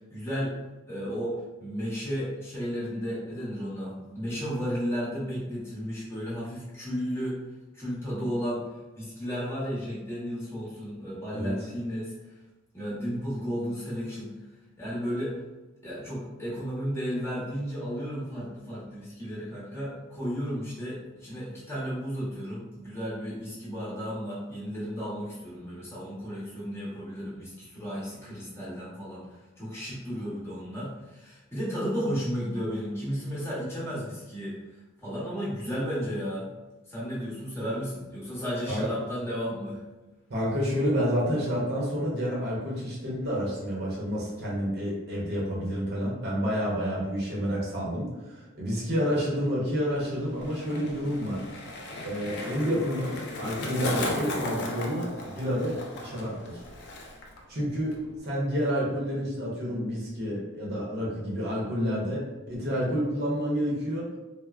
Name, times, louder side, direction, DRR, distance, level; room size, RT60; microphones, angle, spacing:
voice 1, 0.1-0.5 0.9-7.4 7.7-8.6 9.0-12.1 12.7-14.3 14.8-15.4 15.8-29.2 29.6-34.6 35.0-36.5 36.9-39.8, equal, 10° left, -9 dB, 0.8 m, -33 dB
voice 2, 40.3-51.4 52.0-56.6 57.5-58.0 58.2-64.1, equal, 50° right, -5 dB, 0.7 m, -29 dB
Skateboard, 49.8-57.4 57.7-58.2, left 1 dB, 55° left, 0.4 m, -36 dB
3.2 x 2.0 x 2.4 m, 1.1 s
head